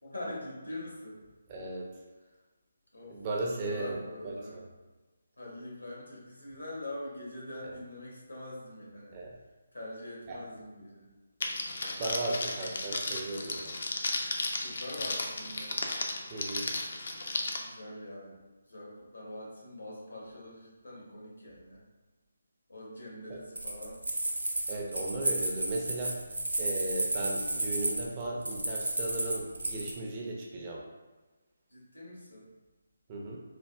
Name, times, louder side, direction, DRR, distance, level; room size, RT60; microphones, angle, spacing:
voice 1, 0.0-1.2 2.9-3.1 3.6-4.7 5.4-9.2 9.7-11.1 14.6-15.7 17.6-18.4 18.7-21.8 22.7-24.0 31.7-32.5, left 1 dB, 85° left, -4 dB, 1.1 m, -43 dB
voice 2, 1.5-1.9 3.1-3.9 4.2-4.6 9.1-9.3 10.3-10.4 11.8-13.7 16.3-16.7 23.3-23.4 24.7-26.2 26.6-30.8 33.1-33.4, right 2 dB, 30° right, -2 dB, 0.5 m, -36 dB
Crackle, 11.4-17.6, left 2 dB, 55° left, 0.4 m, -34 dB
sound 1, 23.6-30.0, right 1 dB, 80° right, 0.4 m, -32 dB
3.3 x 2.3 x 2.2 m, 1.2 s
figure-of-eight pair, 150°, 0 cm